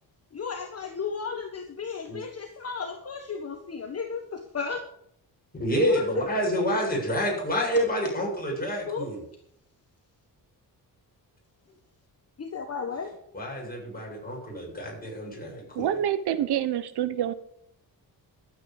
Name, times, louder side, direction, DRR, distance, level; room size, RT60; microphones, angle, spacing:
voice 1, 0.3-4.8 5.7-6.1 8.9-9.1 12.4-13.1, left 5 dB, 40° left, 5 dB, 1.5 m, -34 dB
voice 2, 5.6-9.2 13.3-15.9, equal, 25° left, -2 dB, 7.5 m, -28 dB
voice 3, 15.7-17.3, right 10 dB, 85° right, 14 dB, 1.1 m, -27 dB
12.5 x 9.0 x 7.1 m, 0.71 s
cardioid pair, 110°, 38 cm